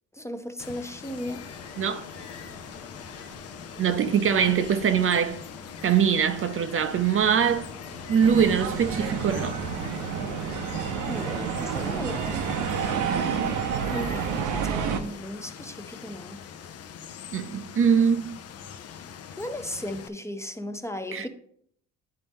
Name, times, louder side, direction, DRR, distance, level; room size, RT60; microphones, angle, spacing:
voice 1, 0.1-1.4 11.1-12.5 13.9-16.4 19.4-21.3, left 1 dB, 10° left, 0.6 m, -36 dB
Water, 0.6-20.1, left 8 dB, 55° left, 0.6 m, -43 dB
Ocean, 0.9-14.9, left 3 dB, 90° left, 1.2 m, -45 dB
voice 2, 3.8-5.5 5.8-7.7 8.1-9.6 17.3-18.4 21.1-21.3, right 7 dB, 45° right, 0.5 m, -23 dB
sound 1, 8.2-15.0, right 7 dB, 80° right, 0.7 m, -29 dB
10.0 x 4.1 x 3.5 m
cardioid pair, 90°, 30 cm